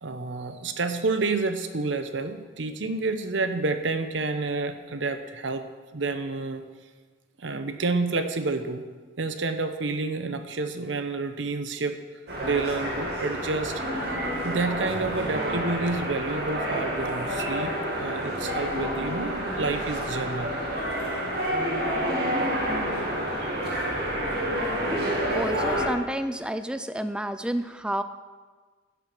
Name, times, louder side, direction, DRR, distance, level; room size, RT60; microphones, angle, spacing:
voice 1, 0.0-5.6 5.9-6.6 7.4-8.9 9.2-12.0 12.4-14.2 14.4-20.5, right 3 dB, 75° right, 8 dB, 0.9 m, -29 dB
sound 1, 12.3-25.9, equal, 55° right, 2.2 m, -29 dB
voice 2, 25.3-28.0, right 1 dB, 5° right, 11 dB, 0.4 m, -30 dB
10.5 x 7.5 x 6.1 m, 1.4 s
head